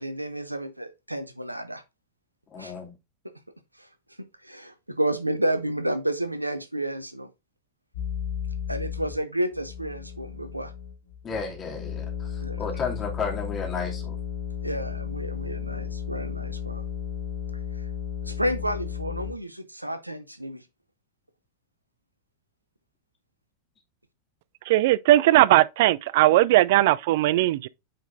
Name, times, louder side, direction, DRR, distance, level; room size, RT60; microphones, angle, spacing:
voice 1, 0.0-1.8 2.6-2.7 3.8-3.9 4.4-7.3 8.7-10.7 12.4-12.7 14.6-16.8 17.7-17.9 18.2-20.6, right 1 dB, 85° right, 0.8 m, -31 dB
voice 2, 2.5-2.9 11.2-14.1, left 5 dB, 25° left, 2.4 m, -33 dB
sound 1, 7.9-9.2 9.5-19.3, left 8 dB, 65° left, 2.1 m, -34 dB
voice 3, 24.7-27.7, right 16 dB, 50° right, 0.4 m, -19 dB
8.7 x 5.1 x 2.5 m
figure-of-eight pair, 90°, 0 cm